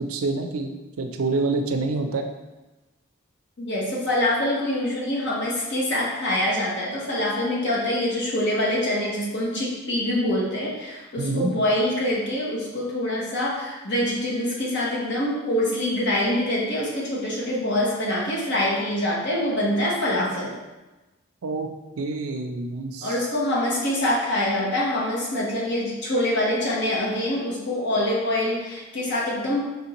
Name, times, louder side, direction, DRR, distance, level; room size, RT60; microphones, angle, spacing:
voice 1, 0.1-2.3 11.2-11.5 21.4-21.7 22.0-23.2, right 3 dB, 90° right, 5 dB, 0.5 m, -27 dB
voice 2, 3.6-20.6 23.0-29.6, left 1 dB, 55° left, -4 dB, 1.0 m, -25 dB
4.5 x 3.4 x 2.9 m, 1.1 s
head